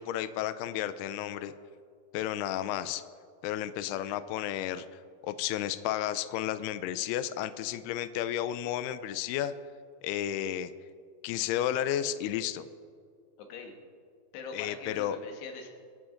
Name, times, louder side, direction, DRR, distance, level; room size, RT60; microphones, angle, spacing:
voice 1, 0.0-1.5 2.1-3.0 3.4-4.9 5.2-9.5 10.0-10.7 11.2-12.7 14.5-15.2, left 11 dB, 85° left, 12 dB, 2.3 m, -32 dB
voice 2, 13.4-13.8 14.3-15.7, left 5 dB, 70° left, 3 dB, 3.5 m, -43 dB
25.0 x 10.0 x 3.9 m, 2.1 s
omnidirectional pair, 5.3 m